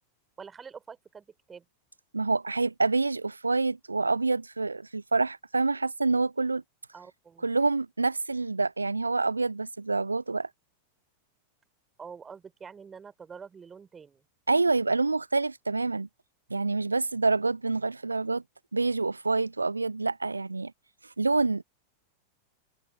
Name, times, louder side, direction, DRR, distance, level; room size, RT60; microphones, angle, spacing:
voice 1, 0.4-1.7 6.9-7.5 12.0-14.2, right 6 dB, 20° right, 4.0 m, -46 dB
voice 2, 2.1-6.6 7.4-10.5 14.5-16.1 16.5-18.4 18.7-20.7 21.2-21.6, right 3 dB, 80° right, 0.4 m, -27 dB
figure-of-eight pair, 90°, 0 cm